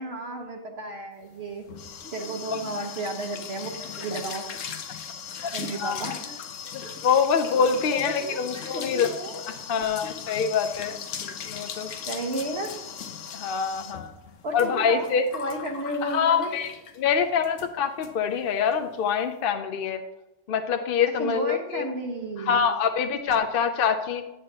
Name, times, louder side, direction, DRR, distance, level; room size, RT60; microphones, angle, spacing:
voice 1, 0.0-1.7 2.1-3.7 4.0-4.5 5.5-6.9 7.8-9.4 12.1-12.8 14.4-16.5 21.2-22.6, right 1 dB, 60° right, 2 dB, 1.3 m, -33 dB
sound 1, 1.3-17.0 17.4-17.7 18.0-18.1 18.4-18.8, left 7 dB, 85° left, 1.1 m, -38 dB
voice 2, 7.0-9.1 9.7-11.0 11.2-11.9 13.3-14.1 14.5-15.3 16.0-16.7 17.0-20.0 20.5-21.9 22.4-24.3, left 7 dB, 60° left, 6 dB, 0.6 m, -25 dB
8.6 x 8.5 x 2.8 m, 0.99 s
omnidirectional pair, 1.3 m